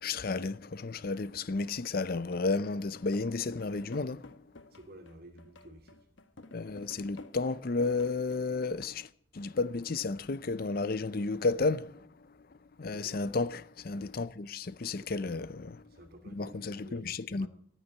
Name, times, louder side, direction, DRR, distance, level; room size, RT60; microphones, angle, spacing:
voice 1, 0.0-4.5 6.5-9.1 9.3-12.1 12.8-15.9 16.3-17.5, left 3 dB, 50° left, 0.6 m, -32 dB
sound 1, 2.1-8.9, left 2 dB, 75° left, 1.1 m, -53 dB
voice 2, 4.7-6.1 12.9-13.2 14.9-15.3 15.9-17.5, right 1 dB, 50° right, 2.6 m, -52 dB
14.5 x 9.0 x 9.7 m
head